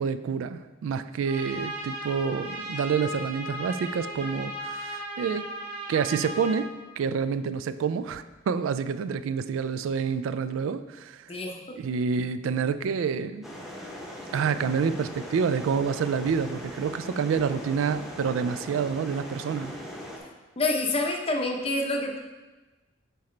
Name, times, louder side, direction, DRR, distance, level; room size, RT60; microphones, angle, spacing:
voice 1, 0.0-5.5 5.9-11.3 11.8-13.5 14.3-19.8, right 6 dB, 90° right, 12 dB, 0.3 m, -28 dB
Trumpet, 1.2-6.6, right 1 dB, 55° right, 1.6 m, -36 dB
voice 2, 11.3-11.8 20.6-22.2, left 2 dB, 30° left, 3 dB, 0.6 m, -27 dB
sound 1, 13.4-20.2, left 1 dB, ahead, 0.8 m, -40 dB
7.6 x 4.2 x 3.2 m, 1.2 s
head